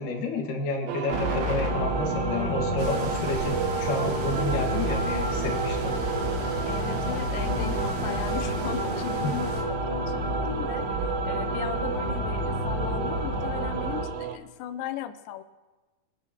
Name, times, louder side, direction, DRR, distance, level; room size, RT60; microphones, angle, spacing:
voice 1, 0.0-5.9 7.4-7.8 9.2-9.3, left 3 dB, 60° left, 1 dB, 2.9 m, -30 dB
sound 1, 0.9-14.4, right 10 dB, 80° right, 2.3 m, -35 dB
sound 2, 1.1-14.0, equal, 35° right, 2.0 m, -29 dB
sound 3, 2.8-9.6, right 3 dB, 60° right, 1.3 m, -40 dB
voice 2, 6.7-10.9 11.3-15.4, left 10 dB, 90° left, 9 dB, 1.9 m, -37 dB
21.5 x 11.5 x 2.9 m, 1.2 s
omnidirectional pair, 4.8 m